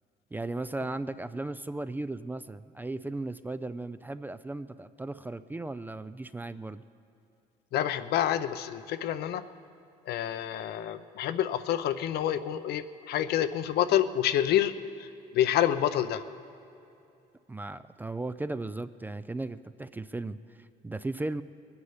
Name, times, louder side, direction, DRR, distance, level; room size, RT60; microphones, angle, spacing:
voice 1, 0.3-6.8 17.5-21.4, right 2 dB, 10° right, 12 dB, 0.3 m, -36 dB
voice 2, 7.7-9.4 10.1-14.7 15.0-15.1 15.3-16.2, left 11 dB, 70° left, 11 dB, 0.7 m, -28 dB
22.0 x 9.6 x 5.7 m, 2.6 s
cardioid pair, 110°, 17 cm